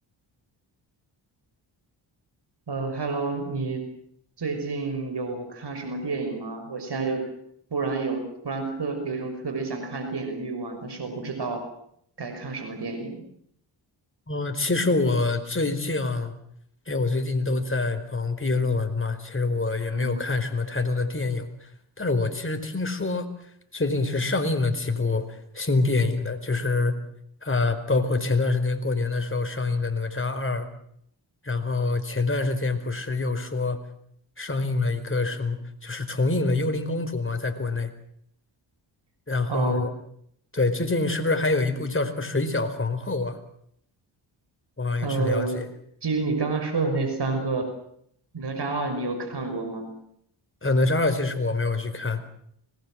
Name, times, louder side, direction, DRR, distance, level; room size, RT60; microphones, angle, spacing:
voice 1, 2.7-3.8 4.4-7.2 7.7-11.6 12.2-13.2 19.9-20.2 39.5-39.8 45.0-45.6 46.0-47.7 48.3-49.9, right 3 dB, 55° right, 6 dB, 5.9 m, -29 dB
voice 2, 14.3-16.3 16.9-21.7 22.0-23.3 23.7-26.9 27.4-30.7 31.4-33.8 34.4-37.9 39.3-39.9 40.5-43.4 44.8-45.7 50.6-52.3, left 3 dB, 25° left, 7 dB, 4.7 m, -26 dB
25.5 x 20.5 x 7.6 m, 0.69 s
cardioid pair, 60°, 48 cm